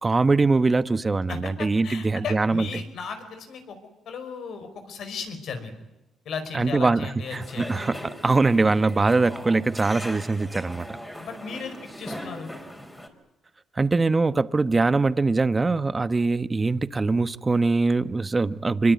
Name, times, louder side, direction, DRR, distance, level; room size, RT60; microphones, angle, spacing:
voice 1, 0.0-2.7 6.5-7.4 7.7-7.9 8.2-10.9 13.8-18.9, right 3 dB, 25° right, 1.1 m, -22 dB
voice 2, 1.3-3.8 4.0-5.7 6.2-7.9 11.2-12.5, left 5 dB, 65° left, 5.0 m, -36 dB
sound 1, 7.2-13.1, equal, 10° left, 5.0 m, -39 dB
25.5 x 22.5 x 9.5 m
cardioid pair, 90°, 0 cm